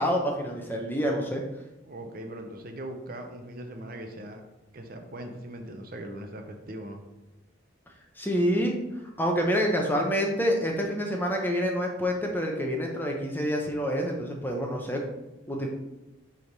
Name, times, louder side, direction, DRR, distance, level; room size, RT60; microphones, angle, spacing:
voice 1, 0.0-1.4 8.2-8.8 9.2-15.0 15.5-15.7, equal, 10° left, 1 dB, 0.9 m, -27 dB
voice 2, 1.9-4.4 4.7-7.0, right 1 dB, 45° right, 4 dB, 0.7 m, -40 dB
6.8 x 3.6 x 4.7 m, 1.0 s
head